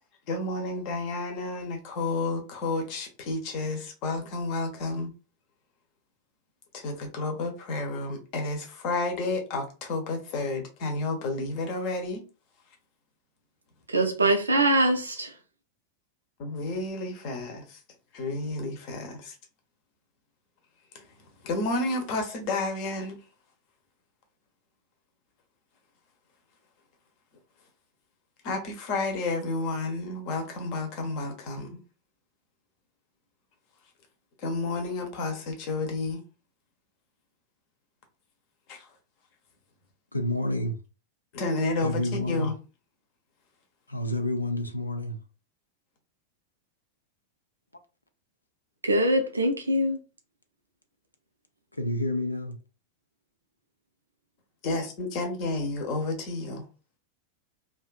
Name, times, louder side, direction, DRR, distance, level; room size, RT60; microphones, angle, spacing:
voice 1, 0.3-5.1 6.7-12.2 16.4-17.8 18.1-19.3 20.9-21.0 21.4-23.2 28.4-31.8 34.4-36.2 38.7-38.9 41.3-42.0 42.3-42.5 54.6-56.7, left 2 dB, 45° left, 0.7 m, -31 dB
voice 2, 13.9-15.3 48.8-50.0, right 1 dB, 80° right, 0.4 m, -23 dB
voice 3, 40.1-40.8 41.8-42.5 43.9-45.2 51.8-52.6, left 1 dB, 85° left, 0.3 m, -29 dB
2.5 x 2.3 x 2.3 m
figure-of-eight pair, 90°, 0 cm